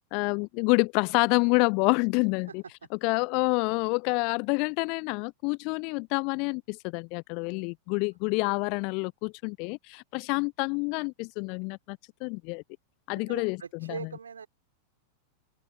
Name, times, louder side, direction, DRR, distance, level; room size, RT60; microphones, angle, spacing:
voice 1, 0.1-2.6 3.0-12.6 13.1-13.6 13.9-14.0, left 33 dB, 45° left, 0.6 m, -28 dB
voice 2, 13.1-14.5, right 6 dB, 70° right, 3.6 m, -41 dB
open air
figure-of-eight pair, 90°, 0 cm